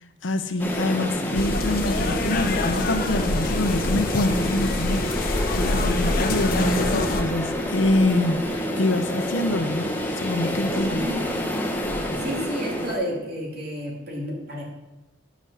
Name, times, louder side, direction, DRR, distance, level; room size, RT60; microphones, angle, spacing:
voice 1, 0.2-11.1, left 2 dB, 85° left, 0.8 m, -25 dB
sound 1, 0.6-13.0, equal, 10° left, 1.2 m, -28 dB
sound 2, 1.3-7.2, left 2 dB, 50° left, 0.9 m, -26 dB
voice 2, 10.7-11.4 12.2-14.6, equal, 55° right, 2.8 m, -31 dB
10.0 x 6.2 x 5.6 m
head